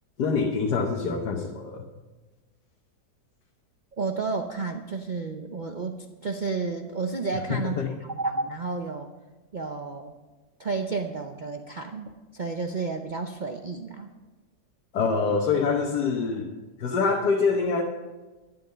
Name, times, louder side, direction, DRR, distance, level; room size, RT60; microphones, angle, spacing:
voice 1, 0.2-1.8 7.5-7.9 14.9-16.5 16.8-17.8, left 5 dB, 70° left, 1 dB, 1.6 m, -25 dB
voice 2, 4.0-9.1 9.5-10.1 10.6-14.1, right 4 dB, 70° right, 4 dB, 0.4 m, -31 dB
11.5 x 11.5 x 5.5 m, 1.2 s
omnidirectional pair, 1.9 m